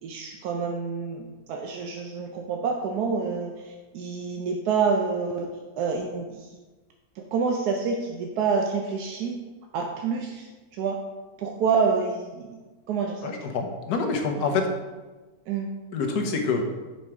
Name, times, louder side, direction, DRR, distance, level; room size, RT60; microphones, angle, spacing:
voice 1, 0.0-5.5 5.8-6.5 7.2-9.4 9.7-11.0 11.4-12.6 12.9-13.3 14.4-14.5 15.5-15.7, right 5 dB, 85° right, 2 dB, 1.2 m, -27 dB
voice 2, 13.2-14.7 15.9-16.6, left 4 dB, 90° left, 4 dB, 1.4 m, -26 dB
5.7 x 4.4 x 4.8 m, 1.2 s
omnidirectional pair, 1.6 m